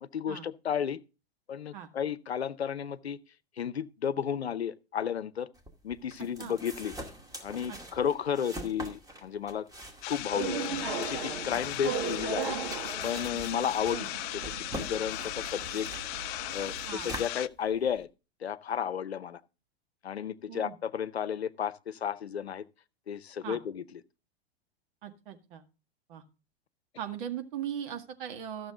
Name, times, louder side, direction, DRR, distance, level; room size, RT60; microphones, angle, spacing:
voice 1, 0.0-1.0 1.5-3.2 3.6-5.5 5.8-6.9 7.4-9.7 10.1-10.6 11.0-12.6 13.0-14.1 14.6-15.9 16.5-18.1 18.4-19.4 20.0-22.6 23.1-23.8, left 8 dB, 85° left, 0.7 m, -33 dB
sound 1, 5.5-18.0, equal, 10° right, 2.3 m, -45 dB
voice 2, 7.7-8.0 11.5-11.6 13.9-14.1 16.9-17.1 20.5-20.8 23.4-23.6 25.0-25.6 26.1-26.2 27.0-28.7, right 9 dB, 55° right, 1.9 m, -39 dB
sound 2, 10.0-17.5, left 18 dB, 30° left, 0.4 m, -37 dB
sound 3, 10.3-16.9, right 6 dB, 70° right, 2.1 m, -37 dB
14.0 x 6.9 x 3.8 m
hypercardioid pair, 100°, 31 cm